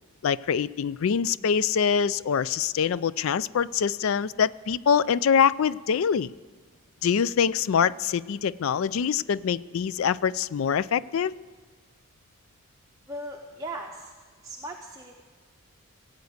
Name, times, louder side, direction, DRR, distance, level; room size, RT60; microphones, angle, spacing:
voice 1, 0.2-6.3 7.0-11.3, left 7 dB, 65° left, 19 dB, 0.3 m, -24 dB
voice 2, 13.1-14.1 14.4-15.2, right 1 dB, 15° right, 0 dB, 0.7 m, -38 dB
17.0 x 8.2 x 7.9 m, 1.5 s
head